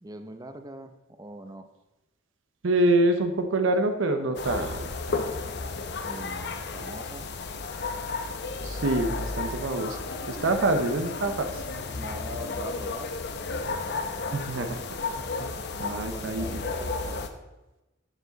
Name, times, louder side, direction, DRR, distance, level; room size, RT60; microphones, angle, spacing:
voice 1, 0.0-1.7 6.0-7.3 10.6-10.8 12.0-13.1 15.7-17.3, right 1 dB, 20° right, 7 dB, 0.6 m, -42 dB
voice 2, 2.6-5.3 8.6-10.0 10.3-11.6 14.3-14.9 15.2-15.5 15.8-16.5, right 2 dB, 80° right, 7 dB, 0.7 m, -26 dB
sound 1, 4.3-17.3, left 3 dB, 60° left, 0.7 m, -33 dB
12.5 x 4.7 x 4.0 m, 1.0 s
head